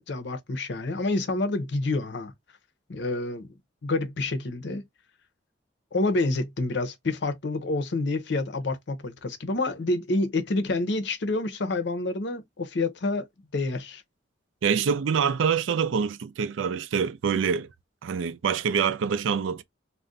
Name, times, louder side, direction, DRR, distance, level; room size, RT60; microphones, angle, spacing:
voice 1, 0.1-2.3 2.9-3.5 3.8-4.8 5.9-13.3 13.5-14.0, left 2 dB, 65° left, 0.7 m, -28 dB
voice 2, 14.6-17.7 18.0-19.6, right 6 dB, 85° right, 0.4 m, -25 dB
2.4 x 2.1 x 3.7 m
head